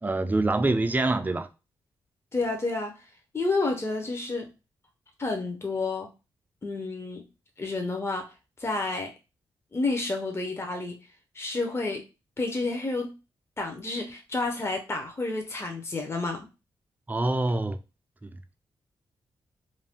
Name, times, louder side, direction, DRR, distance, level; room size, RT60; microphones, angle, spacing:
voice 1, 0.0-1.5 17.1-17.8 18.2-18.4, right 2 dB, 20° right, 0.5 m, -25 dB
voice 2, 2.3-2.9 3.3-4.5 5.2-6.1 6.6-7.2 7.6-8.3 8.6-9.1 9.7-11.1 11.3-12.0 12.4-13.1 13.6-16.5, left 3 dB, 30° left, 0.7 m, -30 dB
2.5 x 2.2 x 3.5 m
cardioid pair, 55°, 9 cm